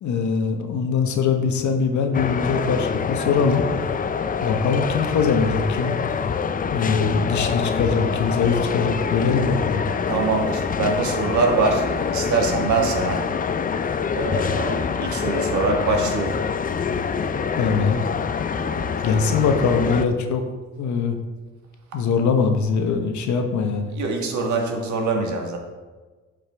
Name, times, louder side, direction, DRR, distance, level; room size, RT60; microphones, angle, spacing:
voice 1, 0.0-3.7 4.4-6.0 6.7-9.8 17.6-18.0 19.0-20.4 20.8-21.2 21.9-23.9, left 5 dB, 70° left, 5 dB, 1.1 m, -22 dB
sound 1, 2.1-20.1, left 6 dB, 30° left, 0.4 m, -25 dB
voice 2, 10.1-11.8 12.1-13.2 14.1-16.3 18.6-19.0 23.9-25.6, right 3 dB, 70° right, 1 dB, 1.6 m, -23 dB
10.5 x 5.2 x 3.4 m, 1.3 s
cardioid pair, 90°, 30 cm